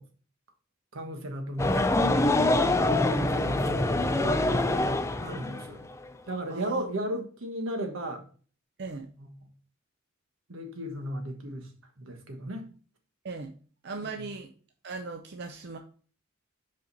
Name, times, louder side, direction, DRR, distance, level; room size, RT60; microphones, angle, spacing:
voice 1, 0.9-1.9 2.8-4.7 5.2-5.9 6.3-8.2 9.2-9.3 10.5-11.7 12.0-12.7 14.2-14.3, right 1 dB, 85° right, 1.3 m, -35 dB
sound 1, 1.6-6.0, left 2 dB, 15° left, 0.4 m, -25 dB
voice 2, 6.5-6.8 8.8-9.1 13.2-13.5 13.8-14.5 14.8-15.8, right 3 dB, 55° right, 0.6 m, -38 dB
5.4 x 5.1 x 4.0 m
head